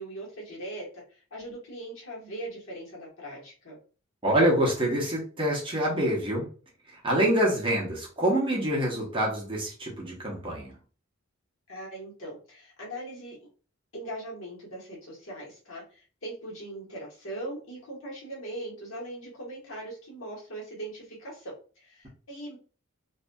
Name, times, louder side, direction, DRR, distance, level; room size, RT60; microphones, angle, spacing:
voice 1, 0.0-3.8 11.7-13.4 13.9-22.6, right 1 dB, 65° left, -4 dB, 1.2 m, -40 dB
voice 2, 4.2-6.5 6.9-10.7, right 1 dB, 25° right, -3 dB, 0.8 m, -26 dB
2.6 x 2.6 x 2.2 m, 0.38 s
head